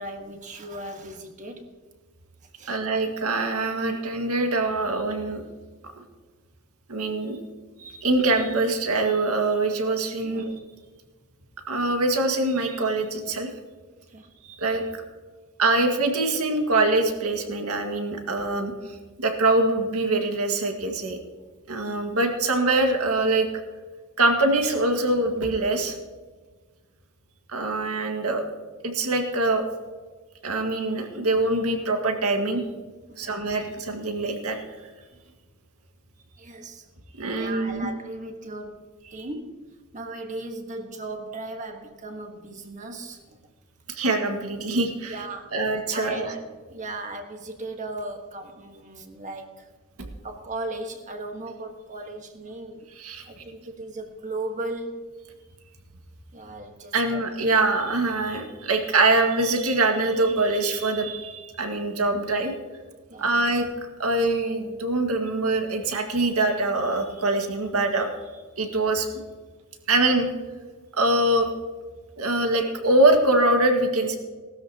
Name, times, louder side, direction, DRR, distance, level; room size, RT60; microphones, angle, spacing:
voice 1, 0.0-1.7 2.6-2.8 10.2-10.5 14.1-14.3 33.1-33.4 36.4-36.9 37.3-38.8 39.1-39.6 39.9-43.4 45.1-49.7 50.2-52.9 53.2-55.1 56.3-57.3 63.1-63.3, right 2 dB, 35° right, 5 dB, 1.5 m, -37 dB
voice 2, 2.7-5.4 6.9-7.4 7.8-10.5 11.7-13.5 14.4-15.0 15.6-18.7 19.2-21.2 21.7-23.5 24.2-26.0 27.5-28.4 28.8-29.6 30.4-32.6 33.2-34.6 37.1-37.9 39.1-39.3 43.9-45.2 45.5-46.3 53.0-53.2 56.9-62.5 63.2-63.7 64.0-68.1 68.6-69.1 69.9-70.3 70.9-71.5 72.2-74.2, right 2 dB, 90° right, 3 dB, 1.9 m, -24 dB
19.0 x 13.0 x 2.9 m, 1.4 s
head